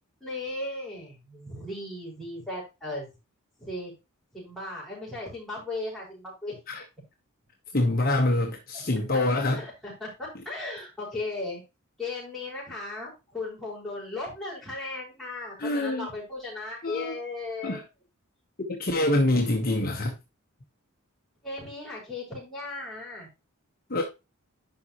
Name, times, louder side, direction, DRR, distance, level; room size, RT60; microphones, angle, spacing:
voice 1, 0.2-3.1 3.6-3.9 4.3-6.6 9.5-11.6 12.0-17.8 21.4-23.3, left 2 dB, ahead, -6 dB, 5.0 m, -36 dB
voice 2, 7.7-9.6 15.6-16.1 16.8-17.1 17.6-17.8 18.7-20.1 23.9-24.0, left 1 dB, 40° left, 1 dB, 1.2 m, -25 dB
10.5 x 5.4 x 3.0 m, 0.26 s
head